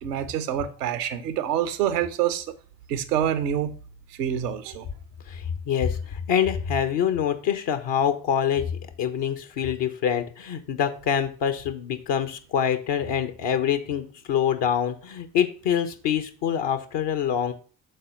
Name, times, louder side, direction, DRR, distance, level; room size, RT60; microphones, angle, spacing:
voice 1, 0.0-2.5 2.9-3.7 4.2-4.9, right 10 dB, 90° right, 0.7 m, -26 dB
voice 2, 5.3-17.5, left 8 dB, 65° left, 1.2 m, -25 dB
6.6 x 4.3 x 5.2 m
hypercardioid pair, 40°, 46 cm